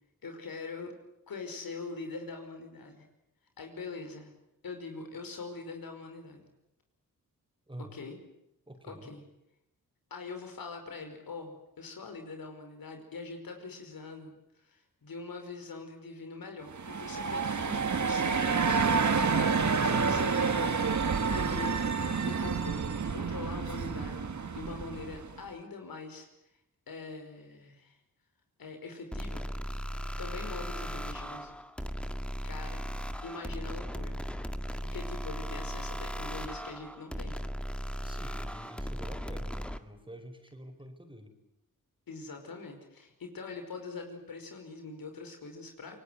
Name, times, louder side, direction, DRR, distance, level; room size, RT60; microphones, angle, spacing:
voice 1, 0.2-0.9 1.3-3.1 3.6-4.3 4.6-6.5 7.8-8.2 8.8-9.2 10.1-18.8 19.8-22.0 22.2-24.2 24.5-26.3 26.9-28.0 28.6-29.5 30.2-31.6 32.4-32.9 33.2-34.4 34.8-37.4 42.1-46.0, left 4 dB, 80° left, 5 dB, 5.3 m, -43 dB
voice 2, 8.7-9.1 38.0-41.3, right 1 dB, 15° right, 6 dB, 5.0 m, -47 dB
sound 1, 16.7-25.4, right 5 dB, 55° right, 2.1 m, -29 dB
sound 2, 29.1-39.8, equal, 5° left, 1.9 m, -37 dB
27.5 x 19.0 x 9.6 m, 0.86 s
cardioid pair, 65°, 34 cm